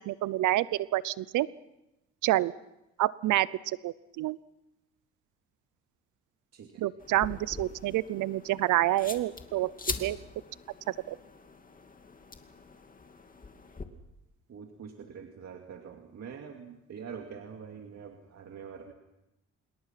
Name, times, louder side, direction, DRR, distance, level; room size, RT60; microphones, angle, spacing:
voice 1, 0.1-1.5 2.2-2.5 3.0-4.4 6.8-9.7 10.0-10.2 10.9-11.2, right 15 dB, 85° right, 19 dB, 0.7 m, -28 dB
sound 1, 7.0-13.8, left 4 dB, 30° left, 2.4 m, -43 dB
voice 2, 14.5-18.9, right 6 dB, 60° right, 3 dB, 2.5 m, -45 dB
27.0 x 22.0 x 5.9 m, 0.93 s
cardioid pair, 90°, 30 cm